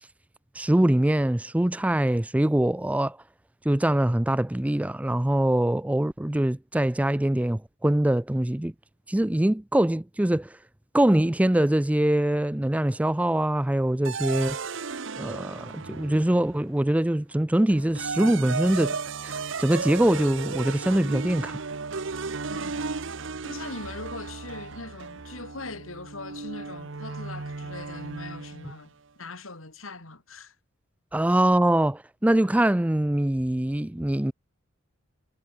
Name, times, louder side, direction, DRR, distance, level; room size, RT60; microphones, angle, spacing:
voice 1, 0.6-3.2 3.6-8.7 9.1-10.5 10.9-14.6 15.2-19.0 19.2-19.3 19.6-21.6 31.1-34.3, right 1 dB, 5° right, 0.4 m, -23 dB
sound 1, 14.0-16.6 17.7-28.8, right 4 dB, 65° right, 1.0 m, -35 dB
voice 2, 22.5-22.8 23.4-28.9 29.2-30.5 31.3-31.4, left 3 dB, 80° left, 4.2 m, -41 dB
head